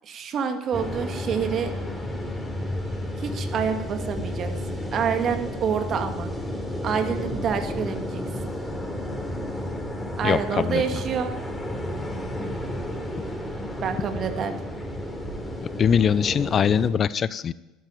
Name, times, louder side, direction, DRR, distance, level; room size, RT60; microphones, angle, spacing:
voice 1, 0.0-1.7 3.2-6.3 6.8-8.2 10.2-11.3 12.4-12.7 13.8-14.5, right 7 dB, 50° right, 7 dB, 2.2 m, -27 dB
sound 1, 0.7-16.9, left 1 dB, 5° left, 3.8 m, -32 dB
voice 2, 10.2-10.8 15.8-17.5, left 7 dB, 45° left, 18 dB, 0.6 m, -22 dB
13.0 x 12.0 x 9.3 m, 1.0 s
hypercardioid pair, 75°, 0 cm